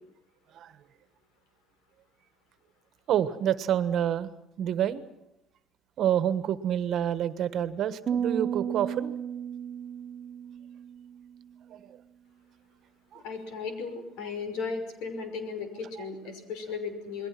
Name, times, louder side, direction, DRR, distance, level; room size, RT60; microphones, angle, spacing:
voice 1, 3.1-4.3 4.6-5.0 6.0-9.1 13.1-13.2, right 10 dB, 45° right, 13 dB, 1.4 m, -27 dB
sound 1, 8.1-11.5, right 8 dB, 30° right, 1.1 m, -33 dB
voice 2, 13.1-17.3, left 4 dB, 90° left, 7 dB, 5.7 m, -36 dB
28.5 x 21.5 x 6.0 m, 0.84 s
cardioid pair, 165°, 0 cm